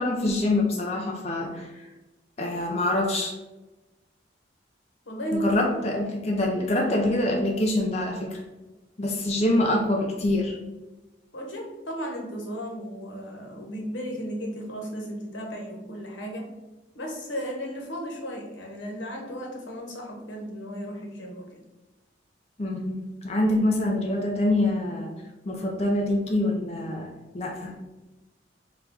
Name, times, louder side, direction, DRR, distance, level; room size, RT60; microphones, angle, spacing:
voice 1, 0.0-1.8 2.4-3.3 5.3-8.4 9.0-10.6 22.6-25.1 25.5-27.7, left 1 dB, 35° left, 0 dB, 0.5 m, -25 dB
voice 2, 5.1-5.6 6.0-6.1 11.3-16.5 16.9-21.5, equal, 90° left, 0 dB, 1.0 m, -34 dB
3.8 x 2.3 x 4.5 m, 1.1 s
head